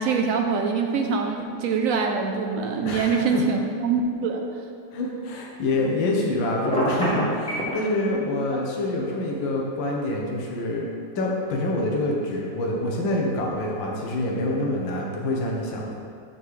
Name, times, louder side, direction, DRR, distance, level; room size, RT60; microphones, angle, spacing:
voice 1, 0.0-4.5 8.5-8.6, right 5 dB, 80° right, 3 dB, 0.7 m, -24 dB
voice 2, 2.9-3.4 4.9-10.9 11.2-15.9, left 2 dB, 75° left, -1 dB, 1.8 m, -26 dB
Telephone, 6.6-7.7, right 1 dB, 5° left, 1.7 m, -24 dB
8.3 x 4.0 x 6.4 m, 2.3 s
omnidirectional pair, 2.1 m